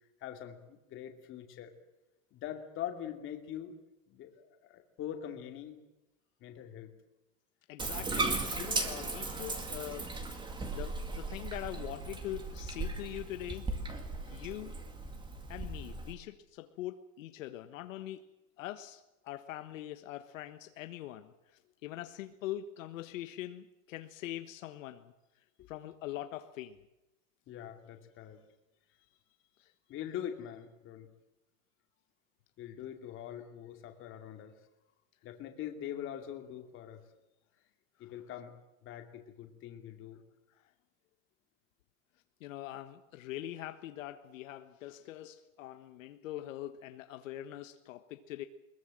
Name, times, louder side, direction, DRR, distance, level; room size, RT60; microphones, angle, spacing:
voice 1, 0.2-1.7 2.3-3.8 4.1-5.8 6.4-6.9 14.3-14.4 25.6-25.7 27.5-28.4 29.9-31.1 32.6-34.5 35.2-37.0 38.0-38.5 38.8-40.2, left 10 dB, 30° left, 5 dB, 2.6 m, -43 dB
voice 2, 7.7-10.1 10.5-13.6 14.2-14.7 15.5-18.2 18.6-21.3 21.8-25.1 25.7-26.8 29.6-29.7 38.0-38.1 42.4-48.4, left 13 dB, 70° left, 8 dB, 1.4 m, -43 dB
Bathtub (filling or washing), 7.8-16.1, right 3 dB, 10° right, 2.2 m, -37 dB
21.5 x 21.0 x 7.7 m, 0.95 s
supercardioid pair, 155°, 40 cm